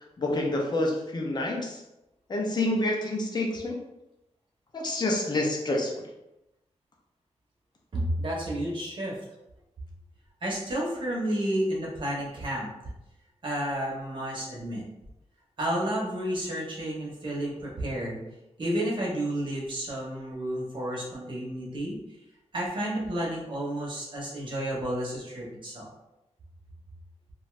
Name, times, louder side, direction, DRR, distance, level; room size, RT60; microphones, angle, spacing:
voice 1, 0.2-1.8 2.3-3.8 4.7-5.9, left 1 dB, 35° left, 0 dB, 0.6 m, -28 dB
voice 2, 7.9-9.2 10.4-12.7 13.4-14.8 15.6-18.2 18.6-22.0 22.5-25.9, right 1 dB, 45° right, -4 dB, 0.8 m, -31 dB
2.6 x 2.3 x 3.1 m, 0.93 s
wide cardioid pair, 145°, 12 cm